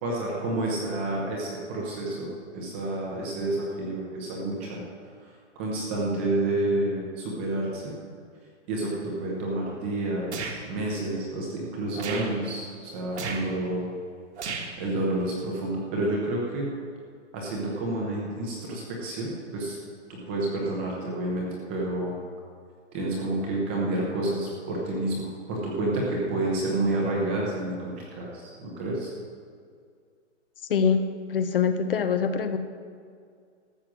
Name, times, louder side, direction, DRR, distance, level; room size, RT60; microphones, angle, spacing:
voice 1, 0.0-4.8 5.2-7.9 8.7-13.9 14.8-16.7 17.3-19.8 20.1-22.2 22.9-29.1, right 2 dB, 10° right, -3 dB, 0.7 m, -29 dB
sound 1, 10.3-10.6 11.9-12.3 13.1-13.4 14.4-14.8, right 5 dB, 65° right, 1.7 m, -34 dB
voice 2, 30.7-31.0 31.3-32.6, left 6 dB, 50° left, 9 dB, 0.8 m, -24 dB
13.5 x 7.5 x 6.2 m, 2.1 s
hypercardioid pair, 170°, 37 cm